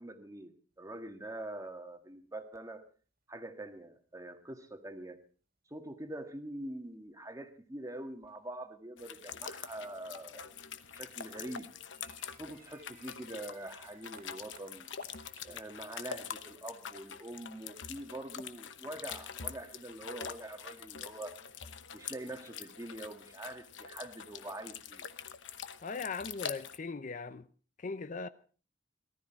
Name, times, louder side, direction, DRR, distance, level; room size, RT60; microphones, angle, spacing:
voice 1, 0.0-2.8 3.3-5.2 5.7-10.6 10.9-11.7 12.4-14.9 15.4-21.3 21.9-25.0, right 1 dB, 20° right, 1.6 m, -44 dB
sound 1, 1.2-1.5 1.8-1.9 2.6-2.7 3.4-4.0 4.5-5.0 5.6-6.5 7.1-7.2 7.5-7.6 8.3-8.9 9.4-9.5 10.1-10.2 10.4-10.8 11.4-16.0 16.6-16.7 17.3-17.7, right 5 dB, 55° right, 2.2 m, -62 dB
sound 2, 9.0-26.8, left 7 dB, 80° left, 1.0 m, -45 dB
voice 2, 25.8-27.5 27.8-28.3, left 4 dB, 45° left, 0.6 m, -39 dB
18.5 x 13.5 x 4.5 m
head